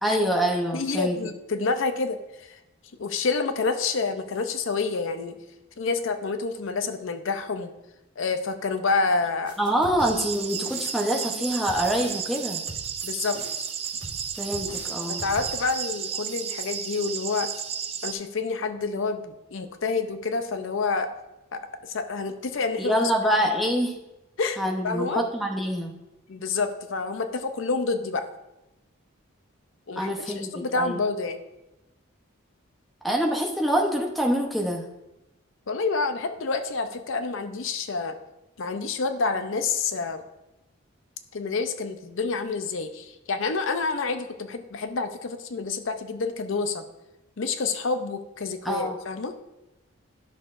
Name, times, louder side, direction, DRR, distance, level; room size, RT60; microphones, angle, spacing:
voice 1, 0.0-1.2 9.6-12.6 14.4-15.2 22.8-23.9 24.6-25.9 30.0-31.0 33.0-34.9 48.6-49.0, equal, ahead, 0 dB, 0.8 m, -25 dB
voice 2, 0.7-2.6 3.0-5.4 5.8-7.7 8.2-9.5 13.0-13.7 15.1-17.5 18.0-21.1 21.5-21.6 21.9-23.1 24.4-24.6 24.8-25.2 26.3-28.3 29.9-31.4 35.7-38.2 38.6-40.2 41.3-46.8 47.4-49.3, left 4 dB, 65° left, 8 dB, 0.6 m, -28 dB
sound 1, 9.5-15.8, right 1 dB, 55° right, 2.6 m, -42 dB
sound 2, 10.0-18.1, right 8 dB, 30° right, 0.3 m, -33 dB
11.5 x 6.3 x 2.5 m, 0.96 s
head